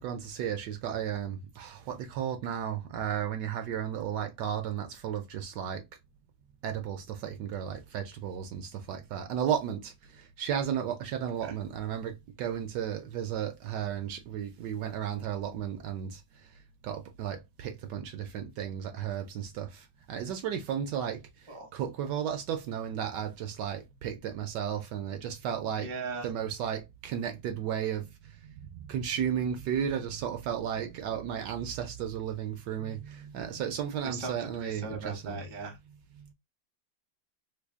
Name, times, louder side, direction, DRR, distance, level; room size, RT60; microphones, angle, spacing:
voice 1, 0.0-5.8 6.6-16.5 16.8-25.9 26.2-35.4 36.2-36.3, right 9 dB, 75° right, 1.1 m, -34 dB
voice 2, 25.8-26.3 34.0-35.8, right 3 dB, 25° right, 0.6 m, -39 dB
3.3 x 2.3 x 3.4 m
omnidirectional pair, 2.1 m